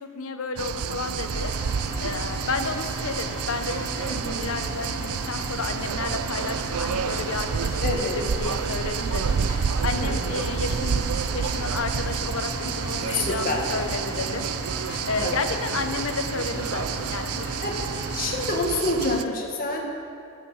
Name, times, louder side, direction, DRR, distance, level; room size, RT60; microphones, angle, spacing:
voice 1, 0.0-1.5 1.8-14.5 15.1-17.5 19.0-19.3, left 4 dB, 65° left, 8 dB, 0.8 m, -32 dB
sound 1, 0.6-19.2, right 7 dB, 80° right, 0.4 m, -29 dB
sound 2, 1.3-18.6, equal, 85° left, 2.4 m, -36 dB
voice 2, 4.0-4.5 7.8-8.2 10.0-10.5 13.1-13.7 15.2-15.7 17.4-17.9 18.1-19.8, left 2 dB, 40° left, 0 dB, 1.6 m, -28 dB
14.5 x 8.2 x 5.7 m, 2.5 s
head